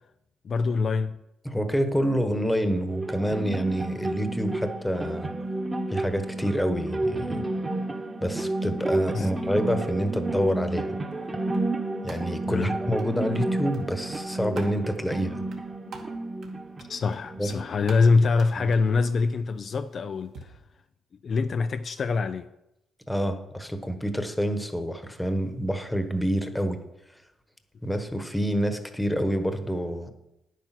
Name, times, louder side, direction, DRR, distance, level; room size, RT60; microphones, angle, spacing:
voice 1, 0.4-1.2 9.1-9.3 12.5-12.7 16.9-20.5 21.2-22.5, left 4 dB, 50° left, 0.5 m, -24 dB
voice 2, 1.4-5.3 5.9-7.4 8.2-11.0 12.0-15.4 17.4-17.5 18.6-18.7 23.1-26.8 27.8-30.1, equal, 5° left, 1.3 m, -27 dB
sound 1, 2.9-17.9, right 2 dB, 25° right, 1.4 m, -31 dB
sound 2, 10.8-20.4, right 4 dB, 65° right, 2.2 m, -50 dB
9.7 x 9.2 x 6.0 m
cardioid pair, 90°, 0 cm